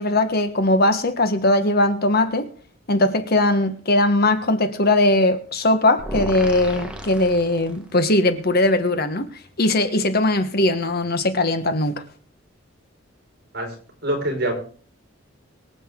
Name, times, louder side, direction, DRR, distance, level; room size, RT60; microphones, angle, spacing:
voice 1, 0.0-2.5 2.9-9.3 9.6-12.0, left 2 dB, 50° left, 1.4 m, -20 dB
sound 1, 6.0-8.1, right 1 dB, 5° right, 1.5 m, -33 dB
voice 2, 14.0-14.5, right 1 dB, 55° right, 5.3 m, -24 dB
23.5 x 8.0 x 3.8 m
head